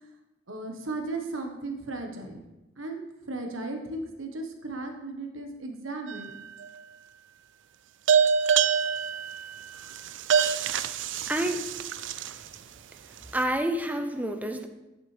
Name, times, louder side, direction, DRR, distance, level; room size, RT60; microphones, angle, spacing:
voice 1, 0.5-2.4 2.8-3.0 3.3-6.4 11.8-11.9, right 2 dB, 85° right, 4 dB, 1.3 m, -36 dB
sound 1, 6.1-6.7 8.1-12.5, right 7 dB, 65° right, 0.4 m, -26 dB
voice 2, 11.3-11.7 13.3-14.7, right 1 dB, 10° right, 6 dB, 0.6 m, -28 dB
11.0 x 6.9 x 3.3 m, 1.0 s
head